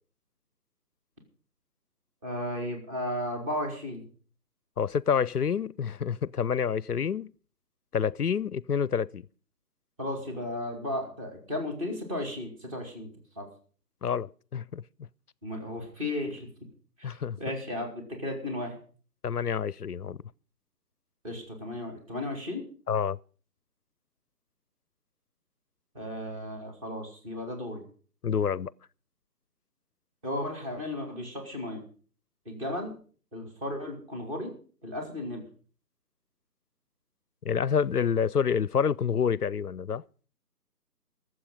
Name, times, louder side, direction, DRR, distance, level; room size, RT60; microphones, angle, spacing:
voice 1, 2.2-4.0 10.0-13.1 13.3-13.5 15.4-16.5 17.0-18.7 21.2-22.7 25.9-27.8 30.2-31.8 32.4-32.9 33.3-34.5 34.8-35.4, left 1 dB, 20° right, 3.3 m, -34 dB
voice 2, 4.8-7.3 7.9-9.2 14.0-14.8 17.0-17.4 19.2-20.2 22.9-23.2 28.2-28.7 37.4-40.0, left 7 dB, 65° left, 0.6 m, -28 dB
21.5 x 7.8 x 5.5 m
figure-of-eight pair, 150°, 49 cm